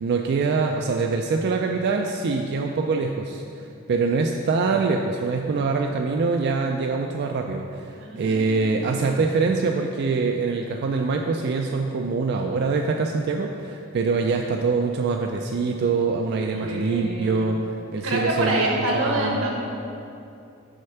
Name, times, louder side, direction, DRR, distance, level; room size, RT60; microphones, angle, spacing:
voice 1, 0.0-19.4, right 4 dB, 50° right, 2 dB, 0.3 m, -24 dB
voice 2, 8.0-9.5 16.5-17.6 18.0-19.7, right 1 dB, 85° right, -1 dB, 1.3 m, -27 dB
6.4 x 4.3 x 5.7 m, 2.6 s
head